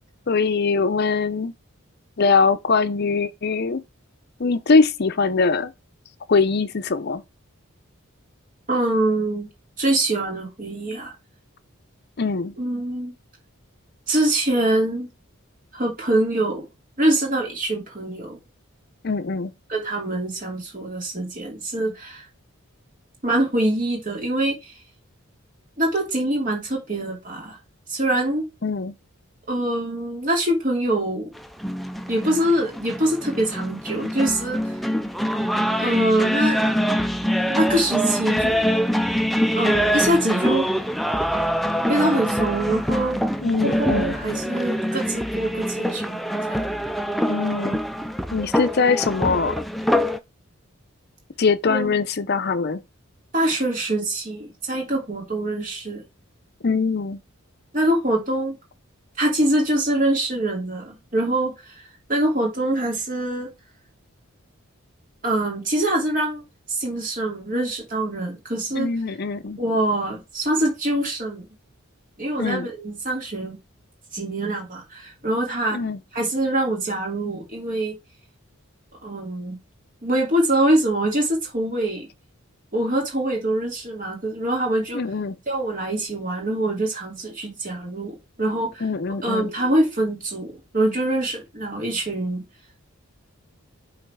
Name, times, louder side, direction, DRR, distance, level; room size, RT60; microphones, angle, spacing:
voice 1, 0.3-1.5 2.2-3.8 4.4-5.7 6.3-7.2 12.2-12.5 19.0-19.5 28.6-28.9 43.4-44.2 47.3-47.8 48.3-49.6 51.4-52.8 56.6-57.2 68.8-69.6 72.4-72.7 75.7-76.0 84.9-85.4 88.8-89.5, left 4 dB, 50° left, 0.6 m, -22 dB
voice 2, 8.7-9.5 9.8-11.1 12.6-13.1 14.1-15.1 15.7-16.7 17.0-18.4 19.7-22.3 23.2-24.7 25.8-27.6 27.9-28.5 29.5-31.3 32.1-34.7 35.8-36.6 37.5-38.7 39.5-40.7 41.9-43.2 43.6-46.2 46.5-46.6 51.7-51.9 53.3-56.0 57.7-58.5 59.2-61.8 62.1-63.5 65.2-66.4 66.7-68.9 69.6-71.4 72.2-73.6 74.1-75.8 76.1-77.9 79.0-79.6 80.0-82.1 82.7-85.0 85.5-88.8 89.2-92.4, right 1 dB, 40° right, 2.7 m, -24 dB
sound 1, 31.4-50.2, equal, ahead, 0.3 m, -24 dB
5.7 x 3.9 x 4.7 m
head